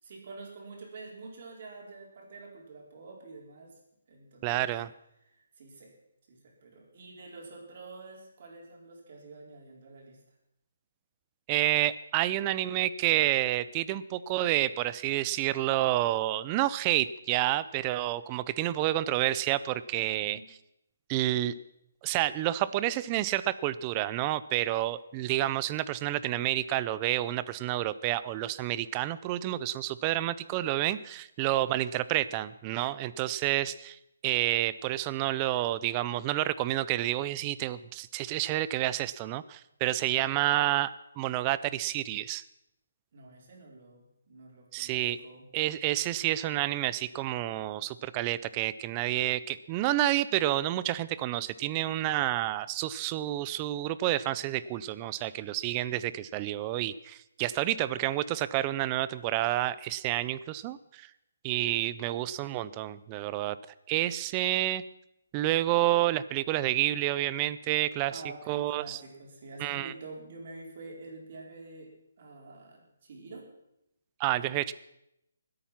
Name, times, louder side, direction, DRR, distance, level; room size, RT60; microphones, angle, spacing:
voice 1, 0.0-3.7 4.1-4.7 5.2-5.9 6.3-10.2 19.9-20.4 40.0-40.3 43.1-45.5 68.1-71.9 72.2-73.5 74.4-74.5, right 3 dB, 40° right, -1 dB, 4.2 m, -47 dB
voice 2, 4.4-4.9 11.5-20.4 21.1-21.5 22.0-42.4 44.7-45.2 45.5-61.1 61.4-63.6 63.9-64.8 65.3-68.2 68.5-69.0 69.6-69.9 74.2-74.7, right 15 dB, 20° right, 16 dB, 0.4 m, -29 dB
20.5 x 8.7 x 5.9 m, 0.82 s
hypercardioid pair, 170°, 0 cm